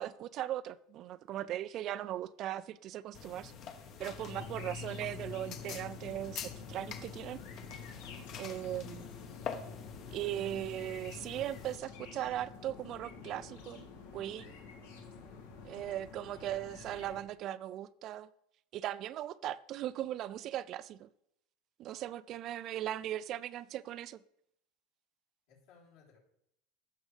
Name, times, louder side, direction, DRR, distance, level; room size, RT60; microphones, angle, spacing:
voice 1, 0.0-3.5 4.0-7.4 7.7-7.8 8.4-9.2 10.1-13.9 14.1-14.5 15.6-18.3 18.7-21.1 21.8-24.2, right 12 dB, 40° right, 0.3 m, -39 dB
sound 1, 3.1-11.8, left 7 dB, 40° left, 0.9 m, -46 dB
sound 2, 4.2-17.2, left 5 dB, 85° left, 2.0 m, -48 dB
voice 2, 15.6-16.1 25.5-26.2, left 6 dB, 65° left, 3.5 m, -62 dB
15.5 x 6.3 x 3.3 m
supercardioid pair, 150°, 0 cm